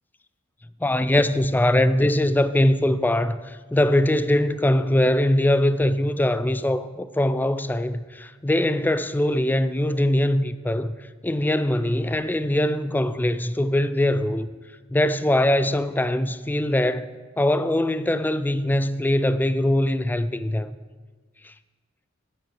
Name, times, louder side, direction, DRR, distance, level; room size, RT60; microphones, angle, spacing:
voice 1, 0.8-11.0 11.2-14.5 14.9-20.7 21.4-21.5, left 1 dB, 10° left, 0.3 m, -22 dB
9.0 x 8.6 x 6.3 m
head